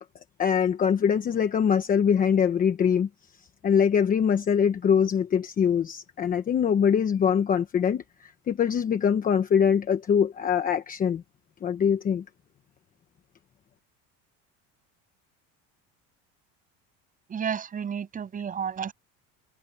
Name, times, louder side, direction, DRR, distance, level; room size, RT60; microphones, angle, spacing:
voice 1, 0.4-3.1 3.6-11.2 11.6-12.2, left 7 dB, 25° left, 1.1 m, -23 dB
voice 2, 17.3-18.9, right 7 dB, 25° right, 7.4 m, -31 dB
cardioid pair, 175°, 35 cm